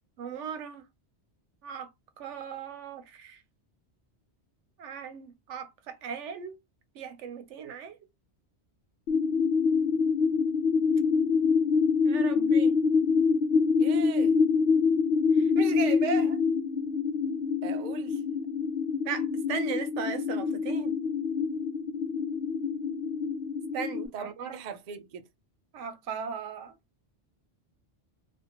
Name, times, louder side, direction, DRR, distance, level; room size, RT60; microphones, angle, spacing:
voice 1, 0.2-0.9 1.6-1.9 2.2-3.4 4.8-6.6 6.9-8.0 12.0-12.7 15.3-16.4 19.0-21.0 23.7-24.6 25.7-26.8, right 6 dB, 90° right, 0.9 m, -37 dB
sound 1, 9.1-24.1, left 5 dB, 65° left, 0.7 m, -26 dB
voice 2, 13.8-14.4 17.6-18.2 24.1-25.2, right 7 dB, 55° right, 0.5 m, -39 dB
2.5 x 2.4 x 2.8 m
omnidirectional pair, 1.2 m